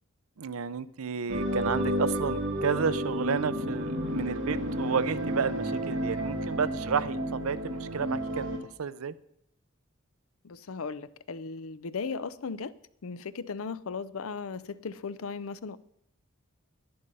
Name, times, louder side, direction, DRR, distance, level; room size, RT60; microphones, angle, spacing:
voice 1, 0.4-8.5 8.8-9.1, right 6 dB, 90° right, 0.6 m, -31 dB
sound 1, 1.3-8.6, equal, 65° right, 2.6 m, -31 dB
voice 2, 10.4-12.7 13.0-15.8, left 5 dB, 75° left, 0.6 m, -37 dB
11.0 x 10.5 x 5.5 m
head